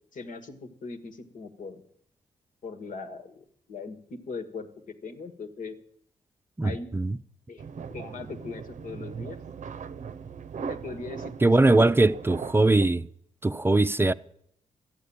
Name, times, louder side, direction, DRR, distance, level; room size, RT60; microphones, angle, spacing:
voice 1, 0.1-1.8 2.6-5.8 6.6-6.9 7.5-9.4 10.7-12.1, left 4 dB, 70° left, 1.6 m, -40 dB
voice 2, 6.6-7.2 11.4-13.1 13.4-14.1, right 2 dB, 15° right, 0.5 m, -21 dB
sound 1, 7.6-12.9, right 6 dB, 60° right, 0.6 m, -38 dB
14.0 x 8.3 x 8.6 m
cardioid pair, 65°, 14 cm